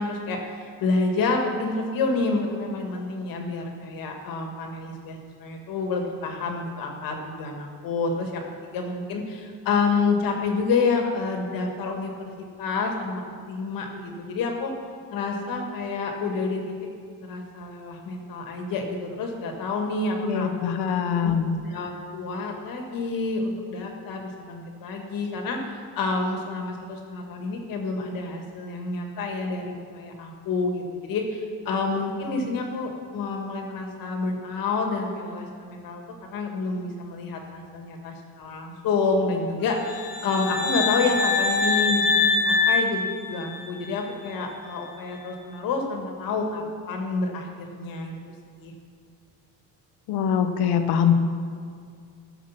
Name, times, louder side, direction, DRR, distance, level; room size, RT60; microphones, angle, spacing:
voice 1, 0.0-12.3 12.6-13.2 13.5-14.7 15.1-16.7 17.2-20.7 21.2-21.4 21.7-36.0 36.3-48.2 48.6-48.7, left 3 dB, 60° left, 2 dB, 2.0 m, -28 dB
voice 2, 20.2-21.6 50.1-51.1, left 8 dB, 85° left, 7 dB, 1.2 m, -23 dB
sound 1, 39.8-43.8, left 4 dB, 45° left, 1.8 m, -24 dB
14.5 x 7.1 x 5.9 m, 2.2 s
cardioid pair, 155°, 38 cm